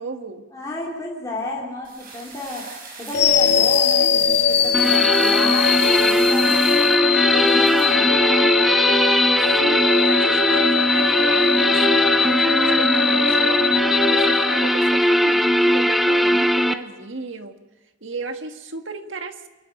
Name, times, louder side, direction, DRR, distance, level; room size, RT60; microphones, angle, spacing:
voice 1, 0.0-0.5 9.6-13.6 14.1-17.6 18.0-19.5, right 3 dB, 80° right, 6 dB, 1.7 m, -34 dB
voice 2, 0.5-2.7 3.0-6.5 7.3-8.5, left 1 dB, 20° left, -5 dB, 3.4 m, -32 dB
sound 1, 1.8-8.0, right 4 dB, 50° right, 5.7 m, -37 dB
sound 2, 3.1-15.3, left 6 dB, 60° left, 0.8 m, -20 dB
sound 3, 4.7-16.7, equal, ahead, 0.8 m, -19 dB
27.0 x 12.0 x 8.8 m, 1.2 s
head